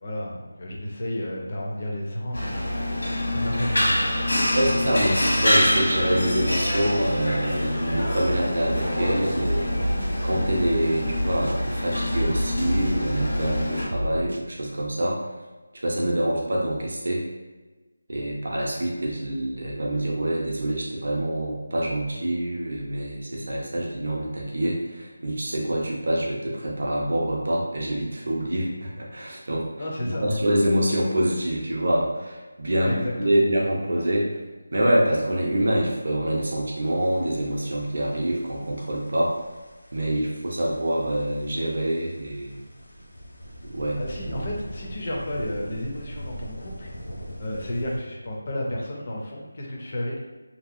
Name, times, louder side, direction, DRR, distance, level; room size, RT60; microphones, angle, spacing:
voice 1, 0.0-2.7 3.3-4.5 29.8-30.3 32.8-33.4 44.0-46.9 47.4-50.2, left 1 dB, 25° left, -2 dB, 0.4 m, -32 dB
sound 1, 2.3-13.8, left 1 dB, 85° left, 1.0 m, -25 dB
voice 2, 4.5-15.2 15.8-17.3 18.1-29.7 30.2-34.4 34.7-39.4 39.9-42.6 43.6-44.0 44.3-44.4, right 1 dB, 45° right, -2 dB, 0.6 m, -26 dB
sound 2, 9.4-10.7 11.1-11.6 12.1-13.6 13.9-14.4, equal, 85° right, 0.3 m, -29 dB
sound 3, 36.8-48.0, equal, 65° left, 0.6 m, -42 dB
2.7 x 2.7 x 2.5 m, 1.2 s
figure-of-eight pair, 180°, 0 cm